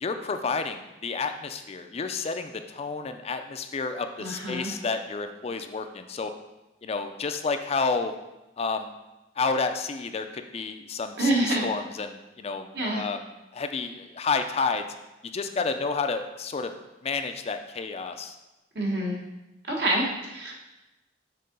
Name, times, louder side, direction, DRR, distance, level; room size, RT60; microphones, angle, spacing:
voice 1, 0.0-6.3 6.8-8.1 8.6-8.9 9.4-13.2 13.5-14.8 15.3-16.7 17.0-18.4, left 4 dB, 35° left, 7 dB, 0.4 m, -30 dB
voice 2, 4.2-4.7 11.2-11.6 12.7-13.0 18.7-19.2 19.7-20.5, right 1 dB, 65° right, -1 dB, 1.4 m, -26 dB
6.6 x 3.7 x 5.2 m, 0.98 s
head